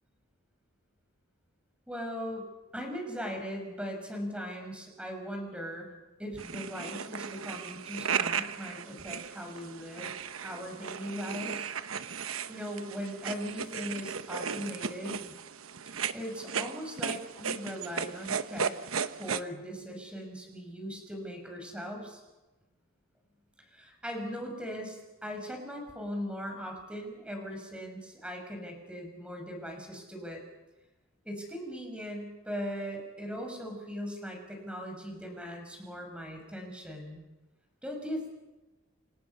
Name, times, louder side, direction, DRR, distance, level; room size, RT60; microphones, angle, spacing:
voice 1, 1.9-2.5 2.7-5.9 6.2-10.1 10.4-11.7 12.5-15.3 16.1-18.7 19.2-22.2 23.7-30.4 31.2-37.2 37.8-38.3, equal, 5° right, 2 dB, 5.7 m, -39 dB
sound 1, 6.4-19.4, right 6 dB, 90° right, 1.0 m, -36 dB
29.0 x 26.0 x 5.6 m, 1.1 s
head